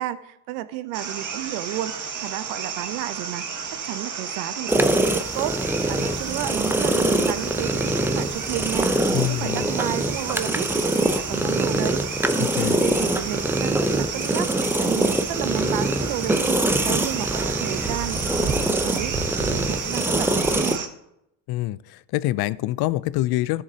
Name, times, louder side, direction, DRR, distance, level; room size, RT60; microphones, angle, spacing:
voice 1, 0.0-1.9 2.2-3.5 3.8-5.5 5.9-16.6 16.8-20.9, right 14 dB, 80° right, 14 dB, 0.8 m, -32 dB
sound 1, 0.9-20.9, right 6 dB, 40° right, 1.4 m, -32 dB
sound 2, 4.7-20.8, right 1 dB, 5° right, 0.6 m, -24 dB
voice 2, 9.1-9.7 12.4-12.8 21.5-23.6, left 16 dB, 55° left, 19 dB, 0.5 m, -25 dB
13.5 x 7.2 x 2.8 m, 0.80 s
supercardioid pair, 75°, 45 cm